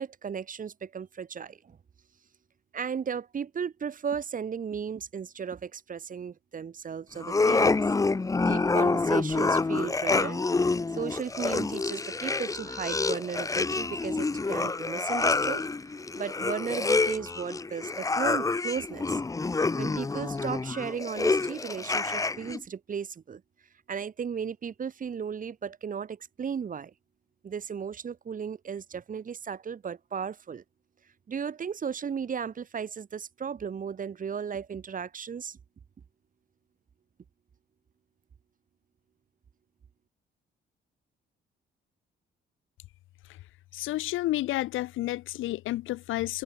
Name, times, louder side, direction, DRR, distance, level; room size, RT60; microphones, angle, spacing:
voice 1, 0.0-1.8 2.7-7.8 8.4-10.4 10.9-15.6 16.1-19.2 19.8-23.4 23.9-26.9 27.4-30.6 31.3-35.6, right 7 dB, 40° right, 1.6 m, -35 dB
sound 1, 7.2-22.6, left 3 dB, 15° left, 0.6 m, -27 dB
voice 2, 43.7-46.4, left 16 dB, 85° left, 1.4 m, -30 dB
cardioid pair, 90°, 20 cm